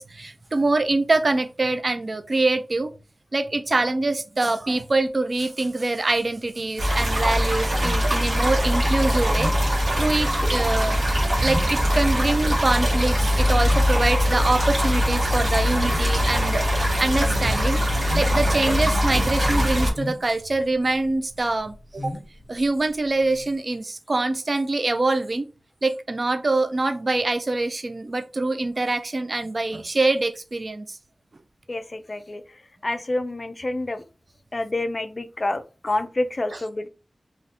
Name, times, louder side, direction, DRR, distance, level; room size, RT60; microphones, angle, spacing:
voice 1, 0.0-2.9 3.3-9.5 10.0-11.0 11.4-17.8 18.1-22.1 22.5-25.5 25.8-31.0 36.5-36.6, right 2 dB, 45° right, 0.3 m, -24 dB
sound 1, 6.8-19.9, equal, 70° right, 1.1 m, -22 dB
sound 2, 7.8-23.5, left 1 dB, 15° left, 0.8 m, -38 dB
voice 2, 31.7-32.4 32.8-34.0 34.5-36.9, left 2 dB, 40° left, 0.4 m, -28 dB
2.6 x 2.4 x 3.4 m
wide cardioid pair, 75°, 0 cm